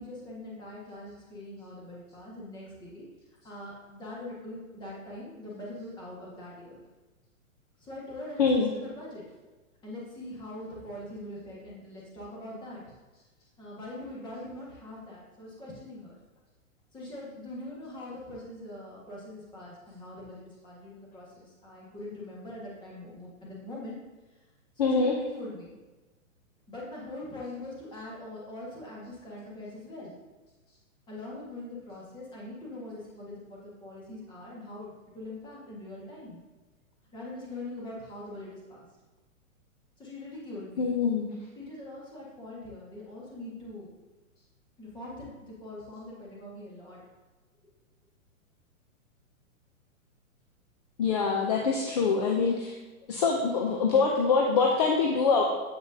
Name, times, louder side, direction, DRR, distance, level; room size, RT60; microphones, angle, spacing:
voice 1, 0.0-3.0 3.4-6.8 7.8-9.2 9.8-12.8 13.6-16.2 16.9-24.0 24.7-25.8 26.7-30.1 31.1-36.4 37.1-38.8 40.0-40.9 41.5-43.9 44.8-47.0, left 1 dB, 10° left, -5 dB, 1.4 m, -42 dB
voice 2, 8.4-8.7 24.8-25.2 40.8-41.3 51.0-52.8 53.1-55.4, left 5 dB, 30° left, 1 dB, 0.4 m, -24 dB
8.0 x 4.9 x 2.6 m, 1.2 s
hypercardioid pair, 150°, 41 cm